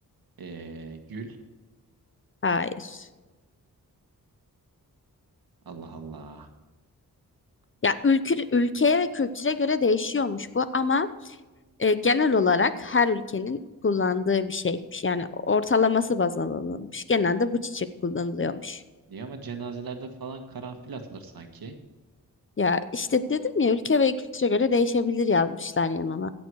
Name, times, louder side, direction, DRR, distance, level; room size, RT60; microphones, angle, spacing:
voice 1, 0.4-1.4 5.6-6.5 19.1-21.8, right 4 dB, 80° right, 5 dB, 1.6 m, -39 dB
voice 2, 2.4-3.1 7.8-11.1 11.8-18.8 22.6-26.3, left 4 dB, 35° left, 13 dB, 0.8 m, -24 dB
16.0 x 7.2 x 4.8 m, 1.2 s
cardioid pair, 60°, 35 cm